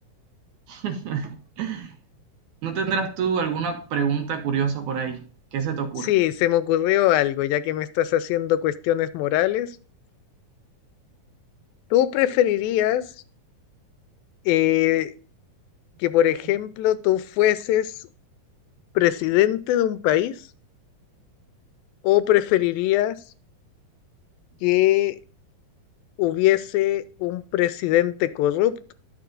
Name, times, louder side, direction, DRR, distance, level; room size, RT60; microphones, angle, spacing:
voice 1, 0.7-1.9 2.6-5.2 5.5-6.1, right 6 dB, 70° right, 6 dB, 2.1 m, -27 dB
voice 2, 6.0-9.7 11.9-13.0 14.5-15.1 16.0-17.9 19.0-20.3 22.0-23.2 24.6-25.2 26.2-28.9, left 14 dB, 90° left, 14 dB, 2.4 m, -21 dB
11.5 x 6.7 x 2.6 m, 0.41 s
omnidirectional pair, 4.1 m